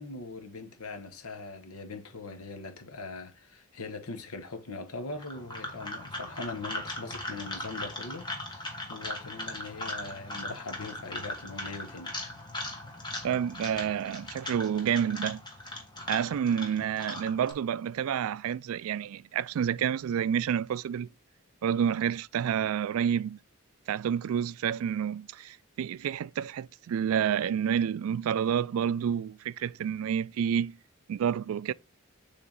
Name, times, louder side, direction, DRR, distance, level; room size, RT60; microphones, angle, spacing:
voice 1, 0.0-12.2 16.9-17.0, left 3 dB, 85° left, 1.1 m, -41 dB
sound 1, 5.1-17.5, left 1 dB, 20° left, 1.4 m, -39 dB
voice 2, 13.2-15.4 16.1-21.1 21.6-23.4 23.9-30.8 31.1-31.7, right 8 dB, 75° right, 0.3 m, -29 dB
7.1 x 3.5 x 3.9 m
head